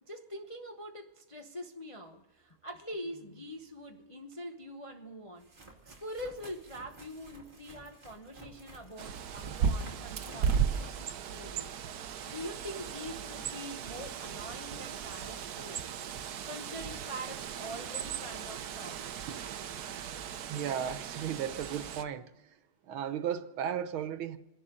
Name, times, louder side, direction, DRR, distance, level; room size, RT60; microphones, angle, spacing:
voice 1, 0.0-5.5 5.8-11.8 12.2-15.9 16.5-19.0, equal, 30° left, 0.6 m, -44 dB
sound 1, 3.2-3.3 4.5-4.6 5.4-11.7 16.9-17.0 18.0-18.1 18.2-18.4 20.3-20.4, right 3 dB, 25° right, 2.6 m, -53 dB
Bird, 9.0-22.0, right 7 dB, 60° right, 1.1 m, -36 dB
voice 2, 20.5-22.3 22.8-24.4, right 9 dB, 90° right, 1.8 m, -35 dB
28.0 x 11.5 x 3.8 m
omnidirectional pair, 2.2 m